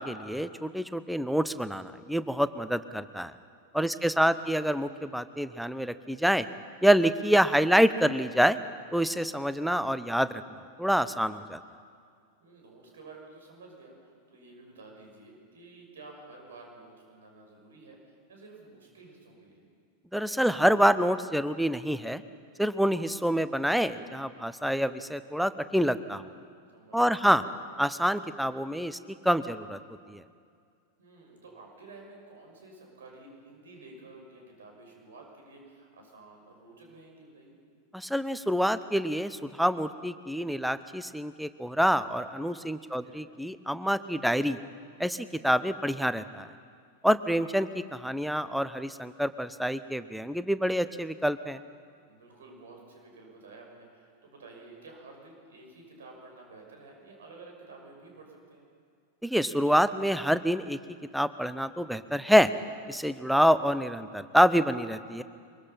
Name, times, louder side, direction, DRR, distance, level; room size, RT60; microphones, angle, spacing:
voice 1, 0.0-3.3 3.7-6.5 6.8-8.6 8.9-10.4 10.8-11.6 20.1-22.2 22.6-26.2 26.9-27.4 27.8-29.8 30.1-30.2 37.9-44.6 45.0-46.5 47.0-51.6 59.2-60.8 61.1-62.5 62.9-65.2, equal, ahead, 13 dB, 0.8 m, -26 dB
voice 2, 3.9-4.5 12.4-19.6 26.7-27.3 31.0-37.6 42.8-43.3 52.0-58.7, right 3 dB, 65° right, 1 dB, 6.1 m, -51 dB
23.0 x 23.0 x 5.7 m, 2.2 s
figure-of-eight pair, 90°, 0 cm